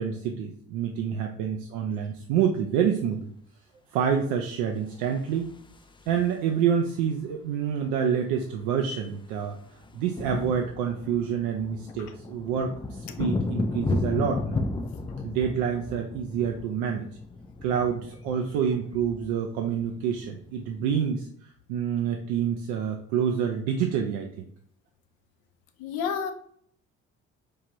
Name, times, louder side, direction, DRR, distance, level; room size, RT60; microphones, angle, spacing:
voice 1, 0.0-3.3 3.9-5.5 6.1-9.6 9.9-14.6 15.2-17.1 17.6-24.5, right 8 dB, 80° right, 3 dB, 0.5 m, -27 dB
sound 1, 5.0-6.5 7.8-7.9 8.1-8.3 8.6-20.7, left 3 dB, 15° left, 0.4 m, -34 dB
voice 2, 25.8-26.3, left 6 dB, 75° left, 8 dB, 0.6 m, -30 dB
4.7 x 2.4 x 2.9 m, 0.63 s
hypercardioid pair, 50°, 34 cm